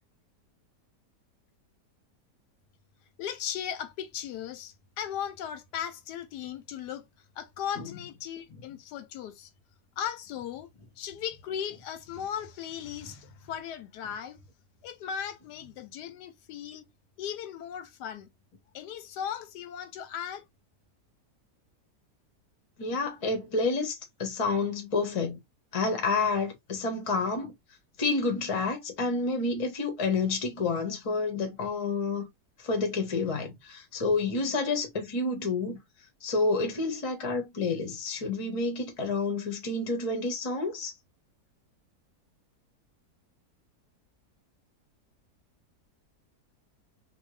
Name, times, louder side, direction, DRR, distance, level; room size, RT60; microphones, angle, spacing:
voice 1, 3.2-7.0 7.4-9.5 10.0-10.7 11.0-14.4 14.8-16.9 17.2-18.3 18.7-20.4, left 9 dB, 80° left, 1.1 m, -37 dB
voice 2, 22.8-25.4 25.7-27.5 28.0-32.3 32.6-35.8 36.2-40.9, left 3 dB, 30° left, 0.7 m, -29 dB
2.8 x 2.3 x 3.0 m
omnidirectional pair, 1.8 m